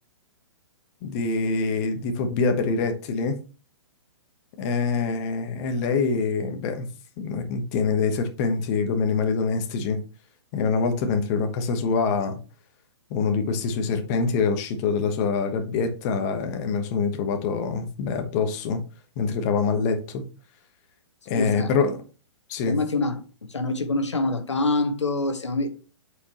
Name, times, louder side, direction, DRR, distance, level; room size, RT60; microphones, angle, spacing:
voice 1, 1.0-3.4 4.6-6.9 7.2-10.0 10.5-12.4 13.1-18.8 19.2-20.2 21.3-22.0 22.5-22.8, left 4 dB, 35° left, 1.1 m, -25 dB
voice 2, 21.4-21.7 22.7-23.2 23.5-25.7, left 2 dB, 80° left, 1.3 m, -25 dB
8.3 x 4.9 x 3.0 m
figure-of-eight pair, 125°, 15 cm